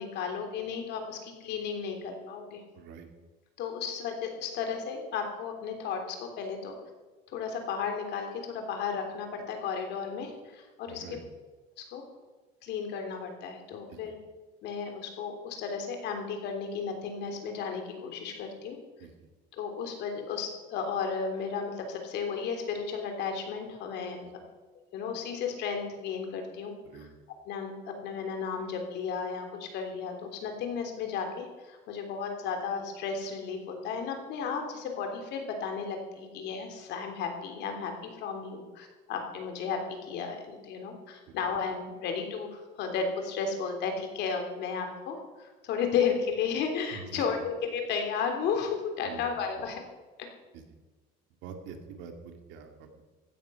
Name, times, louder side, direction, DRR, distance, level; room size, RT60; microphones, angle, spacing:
voice 1, 0.0-2.6 3.6-6.7 7.3-11.2 11.8-12.0 12.6-14.2 14.6-18.8 19.6-24.2 24.9-27.1 27.4-37.9 38.2-49.8, left 6 dB, 60° left, 4 dB, 3.3 m, -34 dB
voice 2, 2.7-3.1 10.9-11.2 13.9-14.1 19.0-19.1 24.2-24.3 26.8-27.1 41.3-41.4 46.9-47.2 49.1-49.2 50.5-50.6 51.4-53.0, right 6 dB, 70° right, 5 dB, 2.3 m, -45 dB
15.5 x 10.5 x 5.7 m, 1.3 s
cardioid pair, 135°, 20 cm